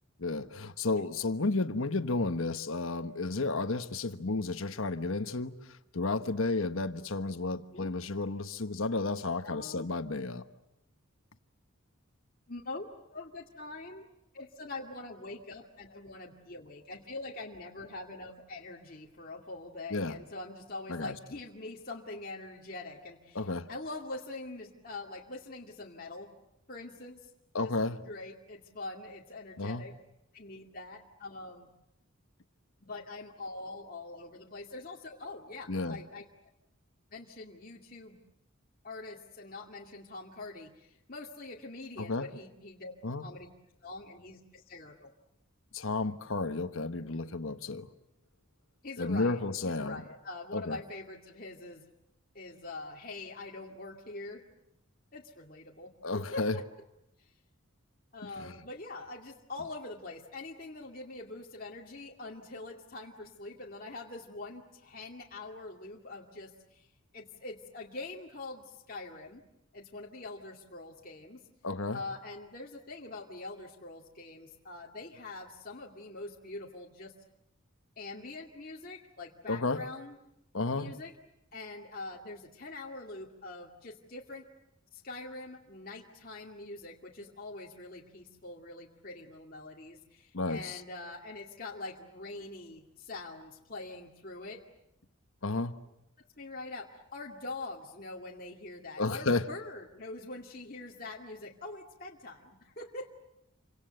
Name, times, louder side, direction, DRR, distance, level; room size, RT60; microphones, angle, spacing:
voice 1, 0.2-10.4 19.9-20.2 20.9-21.1 23.3-23.7 27.5-28.0 29.6-29.8 35.7-36.0 42.0-42.3 43.0-43.3 45.7-47.9 49.0-50.0 50.5-50.8 56.0-56.6 58.2-58.6 71.6-72.0 79.5-79.8 80.5-81.0 90.3-90.8 95.4-95.7 99.0-99.5, left 3 dB, 70° left, 10 dB, 1.2 m, -32 dB
voice 2, 9.4-9.9 12.5-12.9 13.1-14.1 14.3-26.3 26.7-27.3 27.6-27.7 28.0-29.9 30.3-31.7 32.8-36.2 37.1-38.2 38.8-42.9 43.2-43.5 43.8-45.1 48.8-51.9 52.3-54.4 55.1-56.6 57.2-57.3 58.1-66.9 67.1-69.4 69.7-71.4 71.9-77.1 78.0-80.2 80.8-81.1 81.5-84.5 84.9-94.6 96.4-103.1, left 2 dB, 40° left, -1 dB, 2.4 m, -44 dB
28.5 x 25.5 x 7.8 m, 0.84 s
head